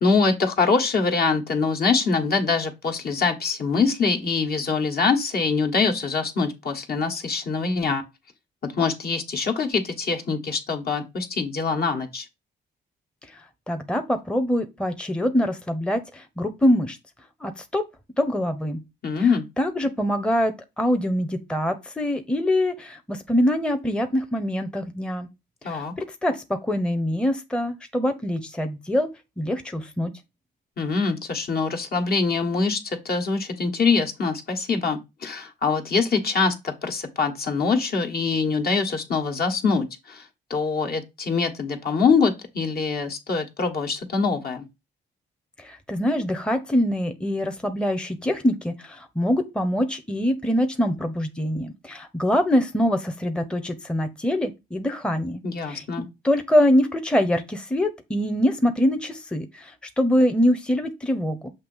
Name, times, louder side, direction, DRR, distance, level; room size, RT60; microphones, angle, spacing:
voice 1, 0.0-8.0 8.6-12.3 19.0-19.5 25.6-25.9 30.8-44.6 55.4-56.0, left 4 dB, 50° left, 1.4 m, -24 dB
voice 2, 13.7-17.0 17.4-17.8 18.2-18.8 19.2-19.3 19.6-25.3 25.6-29.1 29.4-30.1 45.6-55.4 55.7-55.8 56.2-61.5, equal, 5° left, 0.8 m, -24 dB
6.6 x 2.8 x 5.4 m
cardioid pair, 90°, 20 cm